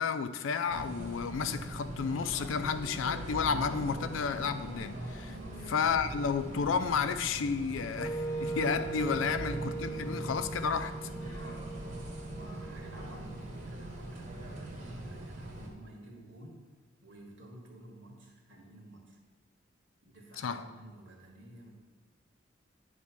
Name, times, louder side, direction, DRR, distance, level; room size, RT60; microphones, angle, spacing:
voice 1, 0.0-5.4 5.7-11.1 20.4-20.7, left 6 dB, 85° left, 0.4 m, -32 dB
sound 1, 0.7-15.7, right 1 dB, 40° right, 1.2 m, -42 dB
voice 2, 5.2-5.7 11.3-11.6 12.2-16.7 17.0-19.2 20.0-21.7, right 1 dB, 70° right, 1.6 m, -52 dB
Wind instrument woodwind instrument, 8.0-14.0, right 3 dB, 15° left, 1.1 m, -40 dB
9.4 x 3.2 x 5.9 m
head